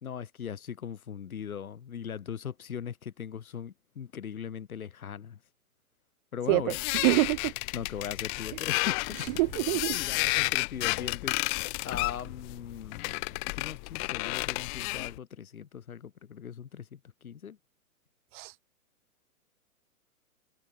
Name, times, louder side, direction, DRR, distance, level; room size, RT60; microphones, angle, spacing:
voice 1, 0.0-5.4 6.3-6.8 7.7-9.0 9.9-11.4 11.8-17.6, left 8 dB, 70° left, 3.8 m, -39 dB
voice 2, 6.5-7.5 9.4-10.0 18.3-18.5, right 24 dB, 35° right, 1.6 m, -26 dB
sound 1, 6.7-15.2, left 40 dB or more, 15° left, 0.5 m, -32 dB
open air
hypercardioid pair, 125°, 44 cm